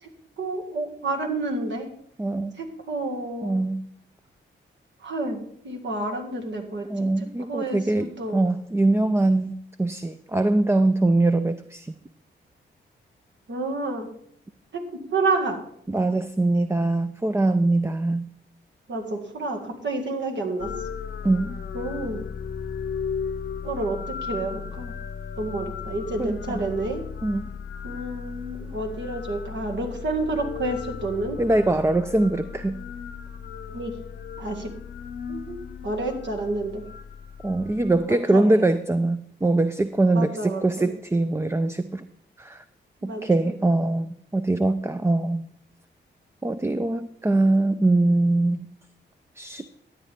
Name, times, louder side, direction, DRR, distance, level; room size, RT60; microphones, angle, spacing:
voice 1, 0.4-1.9 2.6-3.6 5.0-8.4 13.5-14.1 14.7-15.6 18.9-20.7 21.7-22.2 23.6-24.9 25.4-27.0 27.8-31.4 33.7-33.9 34.4-34.7 35.3-36.8 38.1-38.7 40.1-40.9 43.0-43.5, right 2 dB, 65° right, 2 dB, 2.0 m, -30 dB
voice 2, 2.2-2.6 3.4-3.8 6.9-9.5 9.8-11.9 15.9-18.3 21.2-21.6 26.2-26.6 27.2-27.5 31.4-32.8 37.4-42.0 42.4-42.6 43.0-45.5 46.4-48.7 49.4-49.7, right 2 dB, 15° right, 10 dB, 0.5 m, -22 dB
sound 1, 20.6-38.1, left 6 dB, 65° left, 0.8 m, -36 dB
12.0 x 9.2 x 3.6 m, 0.65 s
cardioid pair, 65°, 20 cm